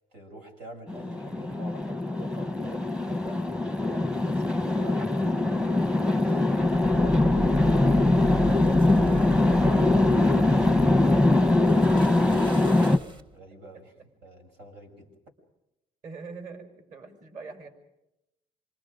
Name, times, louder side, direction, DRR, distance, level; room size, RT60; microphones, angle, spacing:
voice 1, 0.1-3.4 4.2-8.6 11.3-11.5 13.3-13.9 14.2-15.1, right 1 dB, 90° right, 4 dB, 6.6 m, -47 dB
sound 1, 0.9-13.0, left 2 dB, 5° right, 0.9 m, -22 dB
sound 2, 6.6-13.4, right 1 dB, 30° right, 1.7 m, -35 dB
voice 2, 9.5-10.0 10.8-11.6 12.7-13.0 15.0-15.1 16.0-17.7, right 4 dB, 50° right, 7 dB, 5.9 m, -43 dB
27.5 x 25.5 x 5.2 m, 0.90 s
cardioid pair, 110°, 17 cm